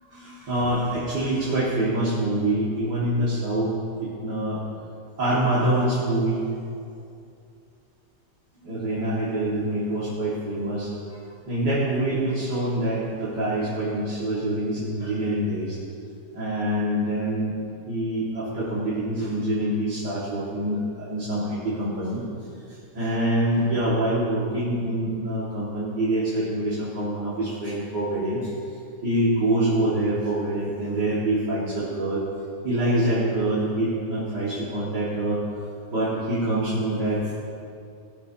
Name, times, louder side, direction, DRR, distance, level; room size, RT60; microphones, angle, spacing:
voice 1, 0.1-3.7 4.0-4.6 5.2-6.4 8.7-10.9 11.5-15.7 16.4-17.5 17.9-22.2 23.0-28.4 29.0-32.2 32.6-35.4 35.9-37.3, right 1 dB, 70° right, -10 dB, 2.9 m, -25 dB
19.0 x 12.0 x 2.9 m, 2.6 s
omnidirectional pair, 1.9 m